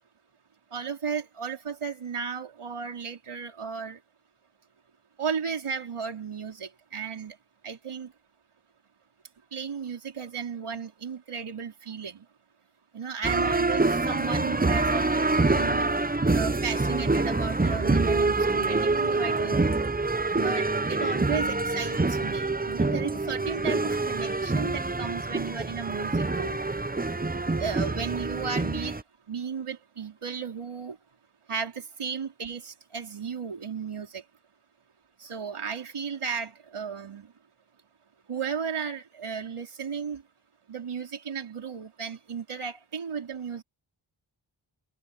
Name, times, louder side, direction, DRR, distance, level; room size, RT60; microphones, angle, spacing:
voice 1, 0.7-4.0 5.2-7.3 7.6-8.1 9.5-12.2 12.9-15.9 16.3-19.7 20.4-26.6 27.6-28.9 29.3-31.0 31.5-34.2 35.2-37.3 38.3-40.2 40.7-43.6, right 6 dB, 80° right, 4.4 m, -34 dB
sound 1, 13.2-29.0, right 3 dB, 20° right, 1.0 m, -26 dB
cardioid pair, 50°, 50 cm